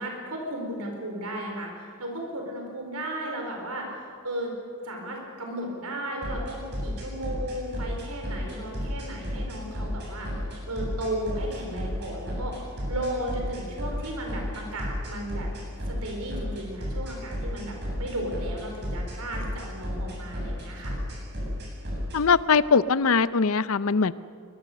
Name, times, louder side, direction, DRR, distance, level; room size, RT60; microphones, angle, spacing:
voice 1, 0.0-4.5 4.8-10.3 10.7-12.5 12.9-15.5 15.9-21.0, right 1 dB, 85° right, 1 dB, 4.5 m, -35 dB
sound 1, 6.2-22.2, equal, 50° right, 7.8 m, -33 dB
voice 2, 22.1-24.1, left 5 dB, 65° left, 16 dB, 0.6 m, -21 dB
23.5 x 21.0 x 6.8 m, 2.4 s
head